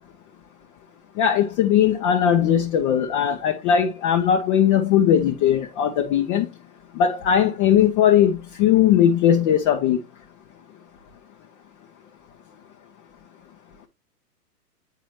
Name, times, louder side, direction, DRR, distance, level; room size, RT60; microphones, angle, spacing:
voice 1, 1.2-6.5 7.0-10.0, left 9 dB, 20° left, 0.6 m, -19 dB
9.1 x 4.0 x 3.0 m
hypercardioid pair, 125°, 48 cm